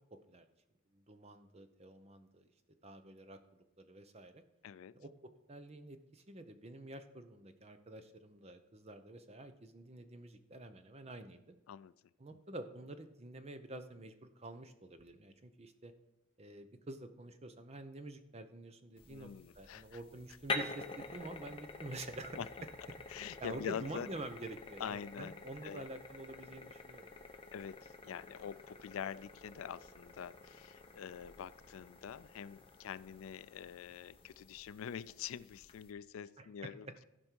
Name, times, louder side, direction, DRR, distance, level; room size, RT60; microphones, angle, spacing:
voice 1, 0.9-2.5 2.8-3.4 3.8-4.4 4.9-11.5 12.2-15.9 16.4-19.3 19.5-22.5 23.4-27.1 36.4-36.9, right 2 dB, 30° right, 9 dB, 0.7 m, -48 dB
voice 2, 4.6-4.9 11.7-11.9 19.1-19.8 22.4-22.5 23.1-24.1 24.8-25.4 25.6-25.8 26.6-26.7 27.5-37.0, left 8 dB, 75° left, 17 dB, 0.3 m, -45 dB
sound 1, 19.0-35.9, left 3 dB, 25° left, 0.9 m, -48 dB
15.0 x 5.3 x 4.6 m, 0.95 s
head